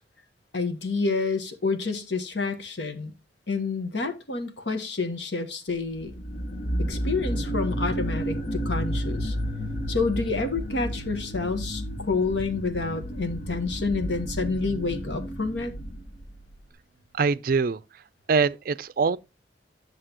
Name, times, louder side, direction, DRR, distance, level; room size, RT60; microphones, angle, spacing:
voice 1, 0.5-3.1 3.5-6.1 6.9-9.3 9.9-15.7, left 4 dB, 85° left, 1.3 m, -28 dB
sound 1, 6.0-16.6, equal, 40° left, 1.1 m, -31 dB
voice 2, 17.1-17.8 18.3-19.2, right 5 dB, 55° right, 0.4 m, -23 dB
8.9 x 6.7 x 2.9 m
head